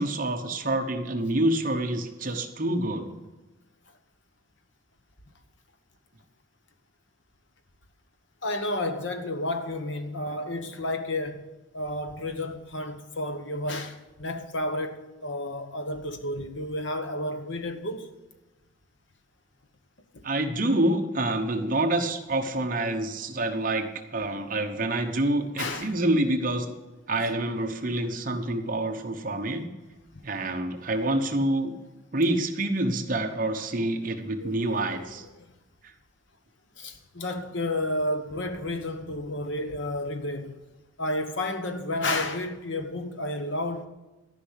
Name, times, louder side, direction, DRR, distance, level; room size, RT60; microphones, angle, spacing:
voice 1, 0.0-3.1 20.2-26.7 27.1-29.7 30.2-31.7 32.1-35.2, right 1 dB, 40° right, 1.0 m, -27 dB
voice 2, 8.4-11.5 11.7-18.1 20.1-20.2 25.6-25.9 34.4-35.1 36.8-40.5 41.0-43.9, left 1 dB, 65° left, 1.2 m, -31 dB
13.5 x 5.8 x 8.2 m
head